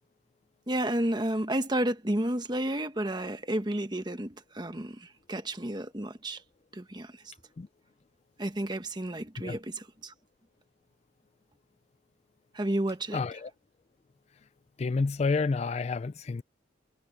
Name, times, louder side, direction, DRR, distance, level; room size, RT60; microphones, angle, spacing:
voice 1, 0.7-6.4 6.7-7.1 8.4-10.1 12.5-13.2, right 1 dB, 25° right, 1.3 m, -31 dB
voice 2, 13.1-13.5 14.8-16.4, left 4 dB, 35° left, 0.3 m, -29 dB
head